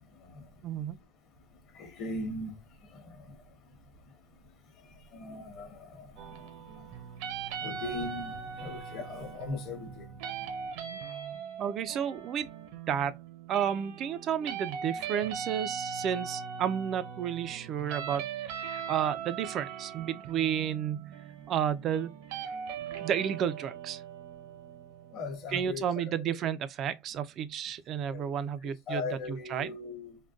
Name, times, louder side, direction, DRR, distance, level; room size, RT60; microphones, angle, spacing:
voice 1, 0.6-1.0 11.6-12.5 12.9-13.2 13.5-21.1 21.5-22.1 22.4-22.5 23.0-24.0 25.5-29.8, right 9 dB, 35° right, 0.4 m, -32 dB
voice 2, 1.7-2.5 2.9-3.0 5.1-6.1 7.6-10.1 25.1-26.4 28.1-28.2 28.9-30.2, left 3 dB, 40° left, 1.0 m, -38 dB
sound 1, 6.2-26.1, right 7 dB, 65° right, 0.8 m, -40 dB
3.7 x 2.2 x 2.3 m
supercardioid pair, 150°, 0 cm